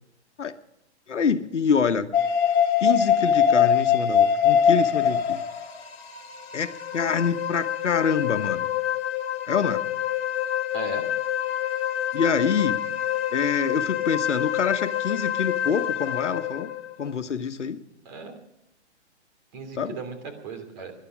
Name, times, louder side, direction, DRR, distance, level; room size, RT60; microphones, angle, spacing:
voice 1, 1.1-2.1 2.8-5.4 6.5-8.7 9.5-9.8 12.1-12.8 13.3-16.7 17.0-17.8 19.8-20.0, left 6 dB, 85° left, 9 dB, 1.2 m, -26 dB
sound 1, 2.1-17.1, left 8 dB, 60° left, 1.6 m, -25 dB
voice 2, 10.7-11.1 18.0-18.3 19.5-20.9, right 4 dB, 40° right, 5 dB, 3.1 m, -37 dB
18.5 x 11.5 x 6.1 m, 0.81 s
hypercardioid pair, 140°, 35 cm